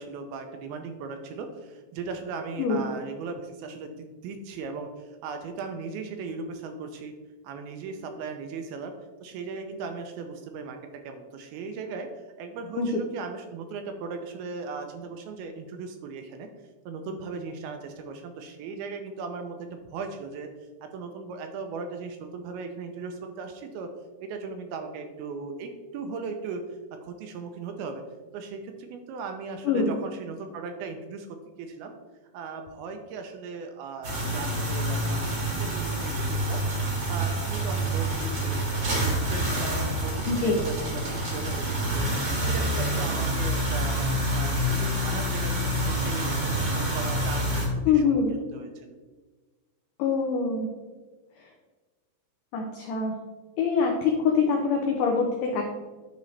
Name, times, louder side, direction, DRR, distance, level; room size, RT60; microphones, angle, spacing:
voice 1, 0.0-7.1 7.4-8.9 9.2-12.1 12.4-16.5 16.9-20.5 20.8-23.9 24.2-26.6 26.9-28.0 28.3-31.9 32.3-36.6 37.1-44.0 44.3-49.0, right 4 dB, 80° right, 6 dB, 2.3 m, -38 dB
sound 1, 34.0-47.7, right 1 dB, 50° right, 1.4 m, -27 dB
voice 2, 40.3-40.6 47.9-48.3 50.0-50.7 51.4-51.5 52.5-53.1 53.6-55.6, left 5 dB, 90° left, 1 dB, 1.8 m, -24 dB
10.5 x 3.8 x 3.2 m, 1.3 s
omnidirectional pair, 4.7 m